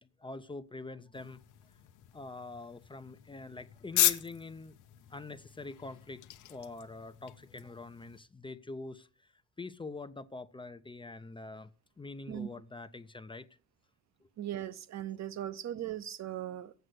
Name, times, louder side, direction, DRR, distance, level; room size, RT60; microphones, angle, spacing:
voice 1, 0.2-1.4 2.1-4.8 5.1-6.2 6.5-9.1 9.6-11.7 12.0-13.5 14.2-14.3, left 3 dB, 15° left, 0.6 m, -44 dB
sound 1, 1.1-8.2, left 13 dB, 90° left, 0.8 m, -36 dB
voice 2, 14.4-16.7, right 11 dB, 60° right, 0.8 m, -38 dB
8.0 x 6.4 x 7.8 m
cardioid pair, 90°, 30 cm